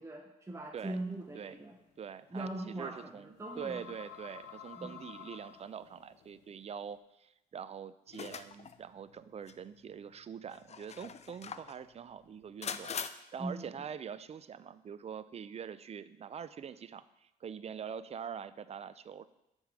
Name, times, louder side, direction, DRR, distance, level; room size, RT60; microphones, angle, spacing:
voice 1, 0.0-1.8 2.3-3.8 4.8-4.9 13.4-13.7, right 1 dB, 15° right, 1 dB, 0.9 m, -41 dB
sound 1, 0.9-7.0, left 9 dB, 85° left, 0.6 m, -52 dB
voice 2, 2.0-19.3, right 7 dB, 40° right, 15 dB, 0.4 m, -44 dB
sound 2, 8.1-8.8 9.5-9.6 10.5-11.8 12.6-13.1, left 7 dB, 40° left, 0.4 m, -41 dB
7.2 x 3.6 x 6.1 m, 0.90 s
cardioid pair, 65°, 17 cm